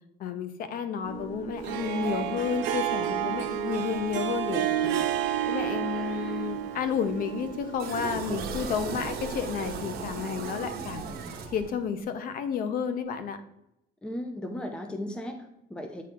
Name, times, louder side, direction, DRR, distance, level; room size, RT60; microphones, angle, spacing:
voice 1, 0.2-4.9 5.5-11.0 11.5-13.4, left 7 dB, 50° left, 10 dB, 0.7 m, -31 dB
sound 1, 1.0-9.3, right 4 dB, 35° left, 1.7 m, -45 dB
Harp, 1.6-9.8, right 10 dB, 90° right, 0.7 m, -31 dB
sound 2, 7.8-12.0, right 5 dB, 60° right, 1.0 m, -36 dB
voice 2, 14.0-16.0, left 1 dB, 5° left, 5 dB, 0.6 m, -36 dB
8.6 x 3.2 x 3.7 m, 0.84 s
cardioid pair, 145°, 18 cm